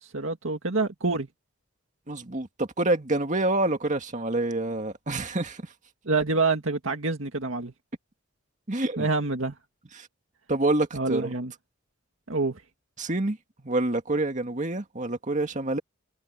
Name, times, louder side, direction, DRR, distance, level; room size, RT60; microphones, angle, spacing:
voice 1, 0.0-1.3 6.1-7.7 9.0-9.5 10.9-11.5 12.3-12.6, right 3 dB, 70° right, 2.2 m, -27 dB
voice 2, 2.1-5.7 8.7-9.1 9.9-10.1 10.5-11.4 13.0-13.4 13.6-15.8, right 2 dB, 40° right, 2.1 m, -27 dB
head